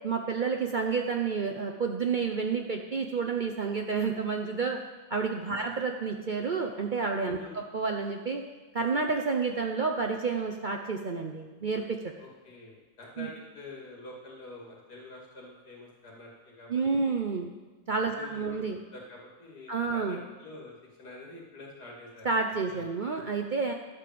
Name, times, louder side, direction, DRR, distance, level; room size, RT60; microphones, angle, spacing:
voice 1, 0.0-4.8 5.1-8.4 8.7-12.1 13.2-13.3 16.7-17.5 17.9-18.8 19.7-20.2 22.2-23.7, right 4 dB, 65° right, 3 dB, 0.4 m, -30 dB
voice 2, 12.2-17.2 18.2-18.6 18.9-22.3 22.6-22.9, left 2 dB, 70° left, -2 dB, 2.9 m, -47 dB
11.0 x 5.1 x 7.6 m, 1.3 s
omnidirectional pair, 1.7 m